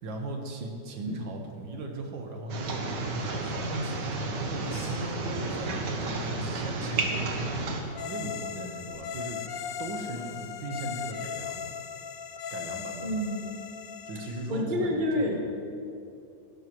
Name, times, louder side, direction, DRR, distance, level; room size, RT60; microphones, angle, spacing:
voice 1, 0.0-2.9 3.3-7.5 8.1-9.4 9.8-11.7 12.5-13.1 14.1-15.4, right 2 dB, 85° right, 2 dB, 2.0 m, -38 dB
sound 1, 2.5-7.8, right 2 dB, 70° right, 1.7 m, -32 dB
sound 2, 4.6-6.3 6.7-8.3 8.9-9.0 9.5-10.8 11.5-11.6, left 1 dB, 30° left, 3.2 m, -47 dB
sound 3, 7.9-14.6, left 7 dB, 70° left, 0.8 m, -38 dB
voice 2, 13.0-13.6 14.5-15.4, left 1 dB, 30° right, 0 dB, 1.3 m, -29 dB
15.5 x 12.0 x 3.2 m, 2.5 s
omnidirectional pair, 2.0 m